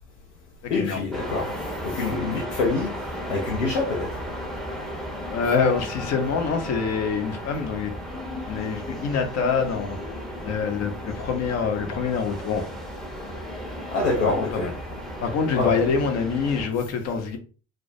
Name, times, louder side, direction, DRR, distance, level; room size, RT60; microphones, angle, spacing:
voice 1, 0.7-1.5 1.8-2.9 3.3-4.1 13.9-14.7 15.5-15.8, left 3 dB, 85° left, 0.5 m, -25 dB
sound 1, 1.1-16.7, equal, ahead, 0.6 m, -35 dB
voice 2, 5.3-7.9 8.5-10.0 10.4-12.6 14.2-14.7 15.2-17.4, left 5 dB, 45° left, 0.6 m, -25 dB
2.2 x 2.1 x 2.6 m
figure-of-eight pair, 55°, 35 cm